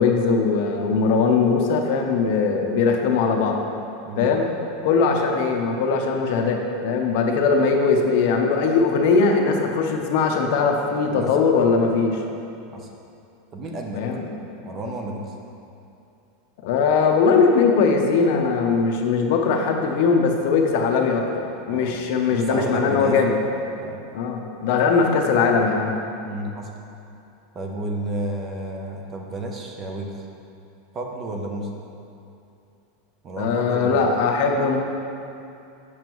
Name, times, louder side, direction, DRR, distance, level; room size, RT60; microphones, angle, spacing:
voice 1, 0.0-3.6 4.2-4.5 4.8-12.2 14.0-14.3 16.6-23.4 24.1-26.0 33.4-34.8, left 5 dB, 55° left, 2 dB, 0.7 m, -20 dB
voice 2, 13.5-14.0 14.6-15.3 21.7-22.0 22.3-23.5 23.8-24.0 26.2-26.7 27.5-30.1 30.9-31.7 33.2-34.1, right 1 dB, 25° right, 1 dB, 0.6 m, -31 dB
7.3 x 6.0 x 3.0 m, 2.7 s
supercardioid pair, 160°, 0 cm